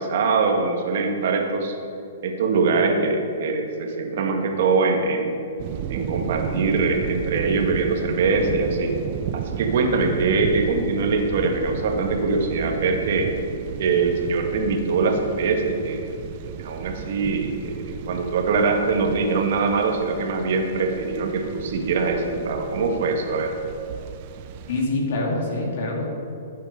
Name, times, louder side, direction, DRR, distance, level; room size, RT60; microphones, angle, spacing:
voice 1, 0.0-1.8 2.2-5.3 5.9-8.9 9.3-13.3 13.8-16.1 16.4-23.5, right 4 dB, 60° right, 3 dB, 1.8 m, -23 dB
sound 1, 5.6-24.9, right 8 dB, 45° right, 0.7 m, -33 dB
voice 2, 24.7-26.0, left 2 dB, 60° left, -1 dB, 3.1 m, -25 dB
13.0 x 9.1 x 4.9 m, 2.7 s
hypercardioid pair, 145°, 0 cm